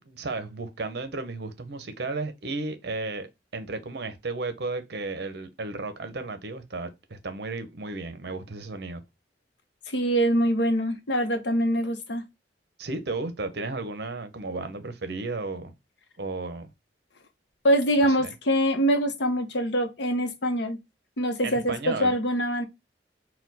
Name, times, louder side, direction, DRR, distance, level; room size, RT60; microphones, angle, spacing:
voice 1, 0.0-3.3 3.5-9.0 12.8-15.7 16.2-16.7 18.2-18.3 21.4-22.1, right 3 dB, 65° right, 0.7 m, -34 dB
voice 2, 9.9-12.2 17.6-20.8 21.2-22.7, equal, 75° left, 0.8 m, -24 dB
4.2 x 2.2 x 4.0 m
head